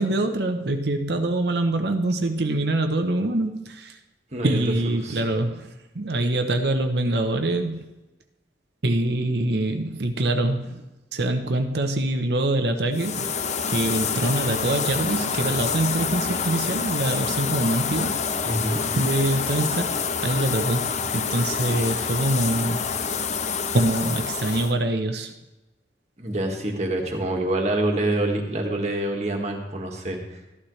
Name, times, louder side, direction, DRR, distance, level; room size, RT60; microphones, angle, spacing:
voice 1, 0.0-4.0 4.4-7.8 8.8-10.8 11.1-18.2 19.0-22.8 23.7-25.3, right 1 dB, 70° right, 6 dB, 0.8 m, -24 dB
voice 2, 4.3-5.3 18.5-18.8 26.2-30.4, right 1 dB, 40° right, 1 dB, 1.7 m, -26 dB
sound 1, 12.9-24.7, left 6 dB, 40° left, 0.6 m, -27 dB
13.5 x 11.5 x 3.2 m, 1.0 s
head